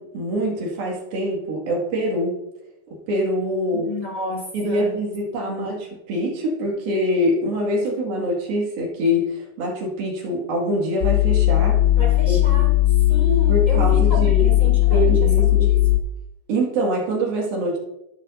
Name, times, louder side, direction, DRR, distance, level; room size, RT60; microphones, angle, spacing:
voice 1, 0.0-2.4 3.1-3.9 4.5-11.8 12.3-12.4 13.5-14.4 14.9-15.7 16.5-17.8, equal, 75° right, -2 dB, 4.0 m, -24 dB
voice 2, 3.7-5.0 5.4-5.7 12.0-12.7 13.1-15.8, equal, 10° left, -4 dB, 2.6 m, -31 dB
sound 1, 11.0-16.0, left 15 dB, 90° left, 2.5 m, -17 dB
17.0 x 7.0 x 2.7 m, 0.89 s
omnidirectional pair, 4.3 m